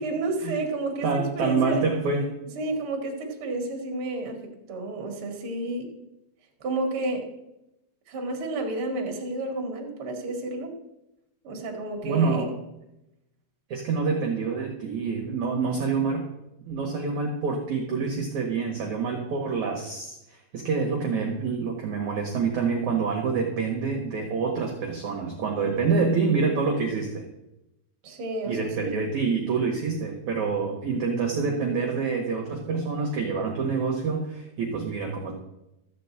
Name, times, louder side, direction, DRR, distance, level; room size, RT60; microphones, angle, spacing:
voice 1, 0.0-1.8 2.5-4.4 4.7-5.9 6.6-7.3 8.1-10.7 11.4-12.5 25.6-26.1 28.0-29.0, right 2 dB, 50° right, 2 dB, 1.7 m, -31 dB
voice 2, 1.0-2.3 12.0-12.6 13.7-16.2 16.7-27.2 28.5-35.3, right 4 dB, 65° right, 1 dB, 1.9 m, -27 dB
14.0 x 5.3 x 8.4 m, 0.90 s
omnidirectional pair, 5.8 m